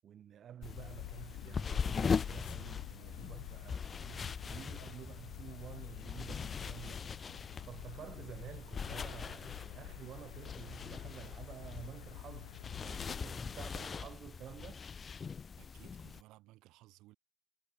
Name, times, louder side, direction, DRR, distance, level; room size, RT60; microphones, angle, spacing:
voice 1, 0.0-7.1 7.6-14.8, right 9 dB, 30° right, 1.0 m, -51 dB
sound 1, 0.6-13.2, left 25 dB, 60° left, 0.6 m, -50 dB
sound 2, 0.6-16.2, left 6 dB, 20° left, 0.7 m, -41 dB
voice 2, 15.6-17.2, right 18 dB, 45° right, 4.7 m, -59 dB
hypercardioid pair, 110°, 0 cm